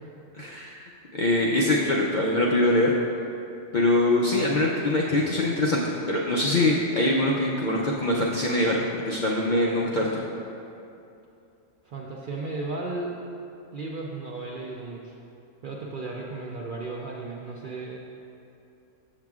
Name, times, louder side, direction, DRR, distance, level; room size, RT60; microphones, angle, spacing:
voice 1, 0.4-2.9 3.7-10.2, left 1 dB, 60° left, -4 dB, 0.5 m, -23 dB
voice 2, 11.8-13.1 13.7-15.2 15.6-18.0, right 3 dB, 65° right, -2 dB, 0.5 m, -35 dB
7.4 x 7.3 x 2.4 m, 2.7 s
omnidirectional pair, 1.3 m